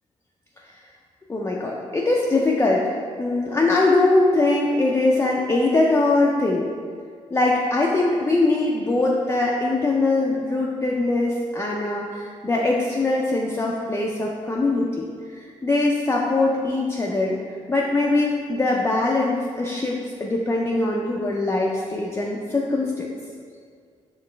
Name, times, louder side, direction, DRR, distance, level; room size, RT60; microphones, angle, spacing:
voice 1, 1.3-2.9 3.2-6.7 7.3-23.2, left 2 dB, 20° left, -2 dB, 0.4 m, -22 dB
5.1 x 3.2 x 3.2 m, 2.1 s
cardioid pair, 85°, 13 cm